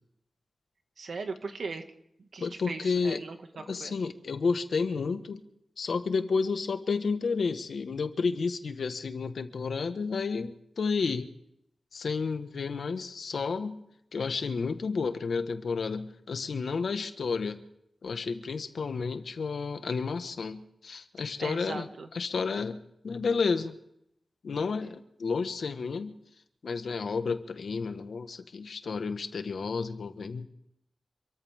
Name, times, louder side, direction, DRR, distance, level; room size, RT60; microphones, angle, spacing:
voice 1, 1.0-1.8 2.2-4.0 21.4-22.1, right 4 dB, 65° right, 6 dB, 1.9 m, -39 dB
voice 2, 2.4-3.2 3.7-5.4 5.8-11.3 11.9-13.8 14.1-17.6 18.0-21.9 22.1-23.8 24.4-26.1 26.6-30.5, left 4 dB, 70° left, 8 dB, 1.4 m, -31 dB
27.5 x 14.5 x 3.6 m, 0.76 s
wide cardioid pair, 125°, 0 cm